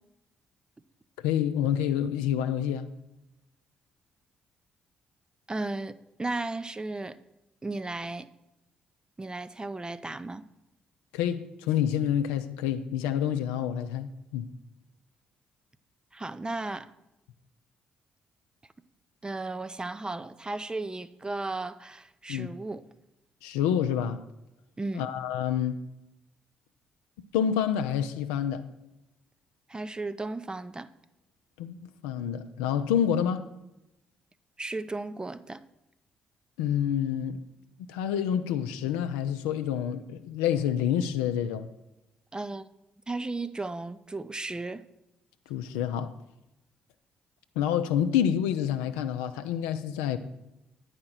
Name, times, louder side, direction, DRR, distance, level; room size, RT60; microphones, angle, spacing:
voice 1, 1.2-2.9 11.1-14.5 22.3-22.5 23.4-24.2 24.9-25.8 27.3-28.6 31.6-33.4 36.6-37.4 37.9-41.7 45.5-46.1 47.6-50.2, left 9 dB, 75° left, 0.5 m, -28 dB
voice 2, 5.5-7.2 7.6-8.3 9.2-10.5 16.1-16.9 19.2-22.8 24.8-25.1 29.7-30.9 34.6-35.6 42.3-42.7 43.1-44.8, right 2 dB, 20° right, 0.6 m, -35 dB
9.6 x 5.0 x 7.2 m
figure-of-eight pair, 40°, 4 cm